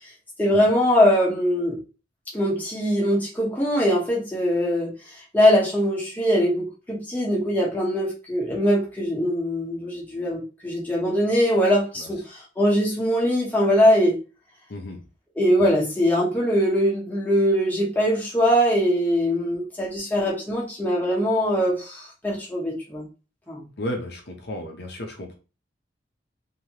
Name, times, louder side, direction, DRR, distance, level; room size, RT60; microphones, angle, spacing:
voice 1, 0.4-1.8 2.3-4.9 5.3-14.2 15.4-23.0 23.5-23.7, equal, 10° left, -5 dB, 1.2 m, -22 dB
voice 2, 14.7-15.0 23.8-25.3, left 1 dB, 60° left, 3 dB, 0.8 m, -33 dB
3.2 x 2.9 x 2.9 m, 0.32 s
head